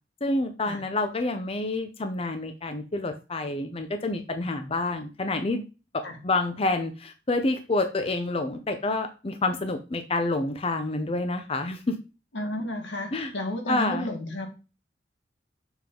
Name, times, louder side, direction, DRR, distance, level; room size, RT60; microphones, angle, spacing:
voice 1, 0.2-5.6 5.9-12.0 13.1-13.3 13.7-14.1, left 2 dB, 35° left, 7 dB, 0.6 m, -28 dB
voice 2, 12.3-14.5, left 1 dB, 90° left, 3 dB, 1.7 m, -32 dB
7.2 x 3.6 x 3.7 m, 0.31 s
head